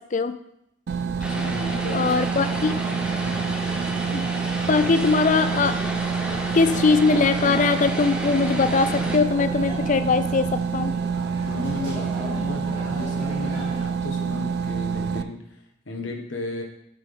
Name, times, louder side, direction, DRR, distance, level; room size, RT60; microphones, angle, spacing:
sound 1, 0.9-15.2, right 6 dB, 50° right, 0.3 m, -27 dB
voice 1, 1.2-2.8 3.2-3.6 11.4-16.6, left 2 dB, 65° left, 3 dB, 1.3 m, -35 dB
Vehicle, 1.2-9.2, equal, 5° right, 0.8 m, -32 dB
voice 2, 1.9-2.7 4.1-4.2 4.7-5.8 6.5-11.0, left 4 dB, 40° left, 11 dB, 0.4 m, -21 dB
sound 2, 8.5-13.8, equal, 25° right, 3.1 m, -37 dB
10.5 x 5.5 x 3.6 m, 0.80 s
head